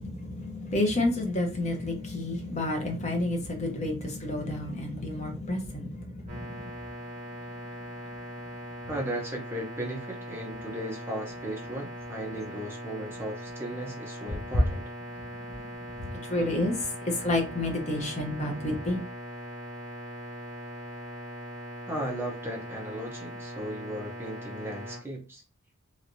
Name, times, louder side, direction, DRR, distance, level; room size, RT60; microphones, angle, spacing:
voice 1, 0.0-6.6 16.0-19.0, left 2 dB, 30° left, 0.8 m, -30 dB
sound 1, 6.3-25.0, equal, 30° right, 1.2 m, -40 dB
voice 2, 8.9-14.8 21.9-25.4, right 1 dB, 10° right, 0.7 m, -36 dB
3.2 x 3.0 x 2.6 m
head